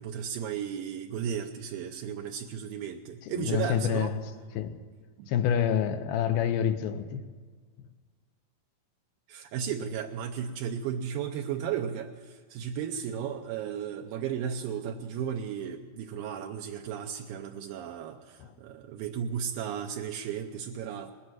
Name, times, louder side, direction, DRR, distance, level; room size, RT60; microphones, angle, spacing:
voice 1, 0.0-4.1 5.2-5.3 9.3-21.1, right 8 dB, 80° right, 2.4 m, -34 dB
voice 2, 3.2-4.2 4.6-4.8 5.3-7.2 18.4-18.5, left 9 dB, 90° left, 2.7 m, -27 dB
20.0 x 8.5 x 7.7 m
omnidirectional pair, 4.2 m